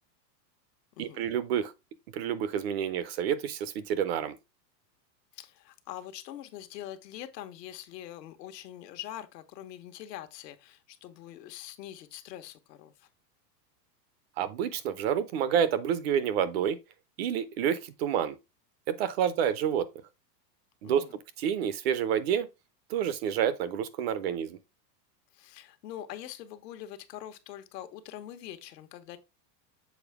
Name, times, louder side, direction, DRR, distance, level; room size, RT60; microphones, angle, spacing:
voice 1, 1.0-1.7 2.1-4.4 14.4-16.8 17.2-18.4 18.9-19.9 20.8-21.0 21.4-22.5 22.9-24.6, right 9 dB, 40° right, 0.5 m, -28 dB
voice 2, 5.3-13.1 20.8-21.2 25.3-29.2, left 12 dB, 75° left, 1.2 m, -44 dB
7.1 x 4.2 x 3.4 m
supercardioid pair, 160°, 50 cm